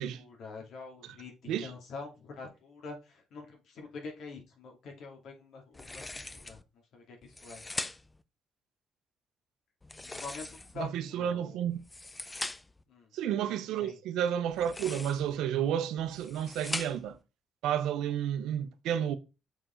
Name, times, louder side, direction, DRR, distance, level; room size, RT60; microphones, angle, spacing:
voice 1, 0.0-6.6 6.9-7.6 10.0-10.5 10.7-11.7 12.9-13.1 13.8-14.0, left 4 dB, 70° left, 2.5 m, -45 dB
sound 1, 5.7-6.6 7.2-8.2 9.8-10.9 11.7-12.8 14.5-15.4 16.0-17.2, left 2 dB, 15° left, 0.6 m, -41 dB
voice 2, 10.8-11.8 13.1-17.2 17.6-19.2, right 9 dB, 90° right, 0.8 m, -31 dB
6.9 x 4.4 x 4.4 m
cardioid pair, 90°, 0 cm